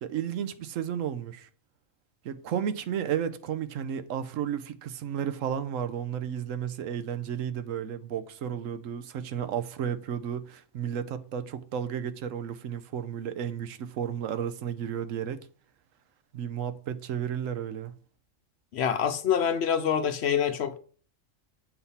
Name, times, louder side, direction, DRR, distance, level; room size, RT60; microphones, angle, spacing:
voice 1, 0.0-1.5 2.2-15.4 16.3-17.9, right 8 dB, 80° right, 1.0 m, -33 dB
voice 2, 18.7-20.8, left 8 dB, 60° left, 0.9 m, -26 dB
8.0 x 5.3 x 4.1 m
omnidirectional pair, 1.3 m